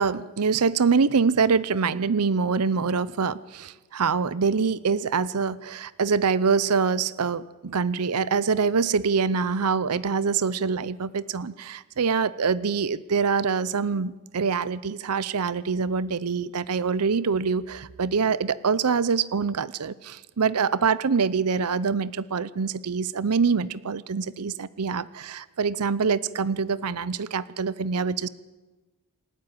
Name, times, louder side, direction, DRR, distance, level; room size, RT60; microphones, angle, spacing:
voice 1, 0.0-28.3, right 5 dB, 85° right, 18 dB, 0.7 m, -25 dB
28.0 x 12.5 x 9.1 m, 1.2 s
head